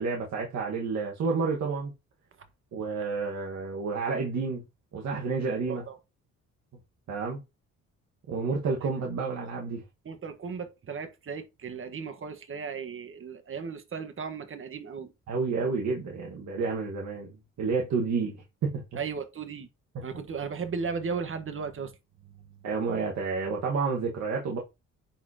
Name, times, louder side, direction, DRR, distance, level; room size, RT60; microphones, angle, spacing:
voice 1, 0.0-1.9 2.7-4.6 4.9-5.8 7.1-7.4 8.3-9.8 15.3-18.4 18.6-19.0 19.9-20.0 22.6-24.6, right 4 dB, 65° right, 1.8 m, -30 dB
voice 2, 10.0-15.1 19.0-19.7 20.0-21.9, right 5 dB, 45° right, 1.5 m, -36 dB
10.0 x 4.3 x 2.9 m
cardioid pair, 90°, 30 cm